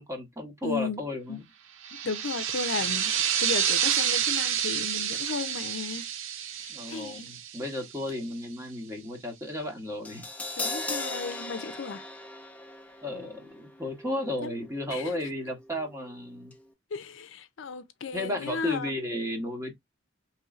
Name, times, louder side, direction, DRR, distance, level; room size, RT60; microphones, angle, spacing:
voice 1, 0.0-1.4 6.7-10.3 13.0-16.5 18.1-19.7, left 1 dB, 15° right, 1.1 m, -34 dB
voice 2, 0.6-1.0 1.3-1.4 1.9-6.1 6.5-7.3 10.6-12.0 14.4-14.5 14.9-15.1 16.9-19.0, left 5 dB, 70° left, 0.5 m, -35 dB
sound 1, 1.8-8.1, right 9 dB, 85° right, 0.5 m, -29 dB
Crash cymbal, 10.0-16.2 16.5-16.6, left 2 dB, 10° left, 0.4 m, -39 dB
4.2 x 3.1 x 2.4 m
head